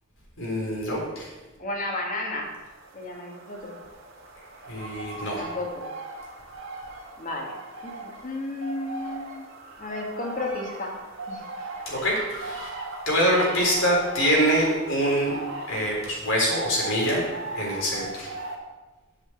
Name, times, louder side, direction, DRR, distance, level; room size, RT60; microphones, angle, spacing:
voice 1, 0.4-1.3 4.7-5.4 11.9-12.7 13.1-15.3 15.7-17.2 17.5-18.3, equal, 85° left, -3 dB, 4.0 m, -24 dB
voice 2, 1.6-2.5 2.9-3.8 5.4-5.9 7.2-7.6 7.8-9.5 9.8-11.0 11.3-11.4, left 2 dB, 40° left, 0 dB, 2.0 m, -33 dB
sound 1, 2.4-18.6, right 2 dB, 80° right, 1.8 m, -38 dB
7.9 x 6.0 x 7.7 m, 1.2 s
head